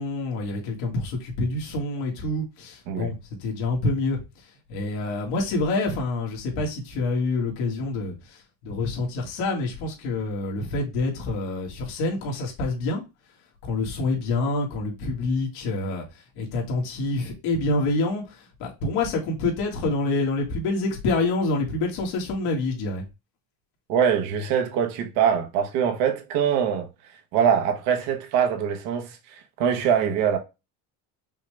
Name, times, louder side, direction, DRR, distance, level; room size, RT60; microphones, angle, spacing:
voice 1, 0.0-3.2 3.4-4.2 4.7-8.4 8.6-13.0 13.6-16.0 16.4-23.0, left 2 dB, 70° left, 1.9 m, -27 dB
voice 2, 23.9-26.9 27.3-30.4, right 8 dB, 60° right, 1.1 m, -23 dB
5.6 x 2.4 x 3.1 m
cardioid pair, 180°, 41 cm